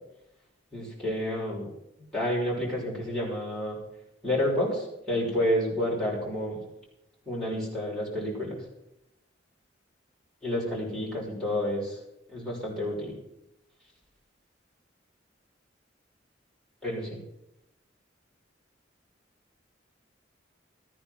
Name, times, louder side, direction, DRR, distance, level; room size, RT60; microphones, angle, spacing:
voice 1, 0.7-1.7 2.1-3.8 4.2-6.6 7.3-8.6 10.4-12.0 12.3-13.1 16.8-17.2, left 1 dB, 5° left, -7 dB, 5.7 m, -29 dB
15.0 x 9.6 x 5.9 m, 0.84 s
head